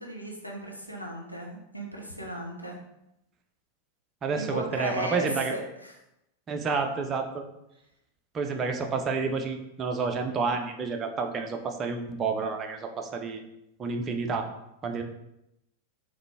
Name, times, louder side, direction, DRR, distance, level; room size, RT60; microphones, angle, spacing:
voice 1, 0.0-2.8 4.4-5.9, equal, 90° left, -1 dB, 0.7 m, -36 dB
voice 2, 4.2-5.5 6.5-7.4 8.3-13.4 13.8-14.5 14.8-15.0, right 4 dB, 25° right, 4 dB, 0.5 m, -29 dB
3.9 x 3.1 x 3.4 m, 0.86 s
figure-of-eight pair, 90°, 0 cm